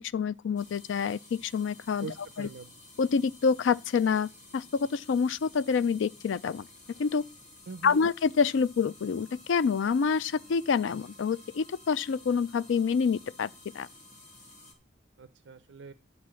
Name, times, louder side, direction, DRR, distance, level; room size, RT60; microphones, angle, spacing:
voice 1, 0.1-2.1 2.4-2.5 3.0-6.7 7.0-7.2 7.8-13.5 13.7-13.9, left 5 dB, 85° left, 0.4 m, -27 dB
sound 1, 0.6-14.7, left 2 dB, 40° left, 2.5 m, -53 dB
voice 2, 2.0-2.7 7.7-8.0 15.2-15.9, right 4 dB, 75° right, 0.5 m, -43 dB
11.0 x 4.1 x 7.6 m
head